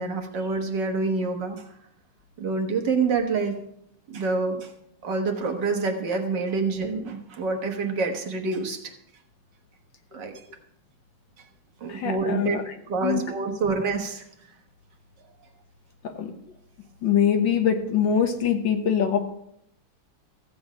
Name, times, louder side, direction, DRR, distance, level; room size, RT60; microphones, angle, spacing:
voice 1, 0.0-1.7 2.4-3.6 4.1-4.7 5.0-8.9 10.1-10.4 11.8-12.6 12.9-14.3, right 4 dB, 60° right, 4 dB, 1.9 m, -27 dB
voice 2, 11.9-12.6 13.0-13.2 16.2-16.3 17.0-19.2, left 8 dB, 70° left, 6 dB, 1.8 m, -23 dB
14.5 x 8.0 x 5.0 m, 0.74 s
omnidirectional pair, 2.2 m